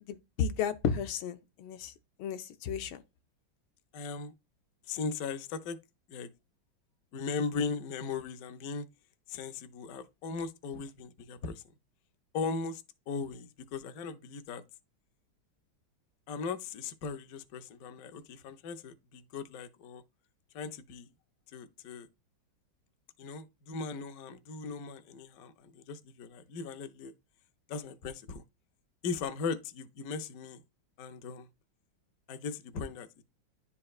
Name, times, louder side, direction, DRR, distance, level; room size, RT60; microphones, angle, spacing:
voice 1, 0.1-1.9 2.2-3.0, left 7 dB, 90° left, 1.5 m, -33 dB
voice 2, 3.9-4.3 4.9-5.8 6.1-6.3 7.1-8.9 9.3-11.6 12.3-14.6 16.3-20.0 20.5-21.1 21.5-22.1 23.2-27.1 27.7-28.4 29.0-30.6 31.0-31.5 32.3-33.2, left 4 dB, 70° left, 0.8 m, -38 dB
10.5 x 4.2 x 2.4 m
omnidirectional pair, 2.1 m